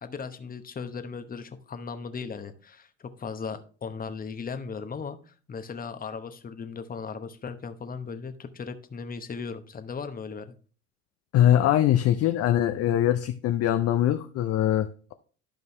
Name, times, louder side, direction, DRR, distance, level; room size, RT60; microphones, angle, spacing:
voice 1, 0.0-10.5, left 5 dB, 20° left, 9 dB, 1.0 m, -37 dB
voice 2, 11.3-15.1, left 11 dB, 35° left, 9 dB, 0.6 m, -22 dB
12.0 x 5.3 x 3.2 m, 0.40 s
hypercardioid pair, 75°, 41 cm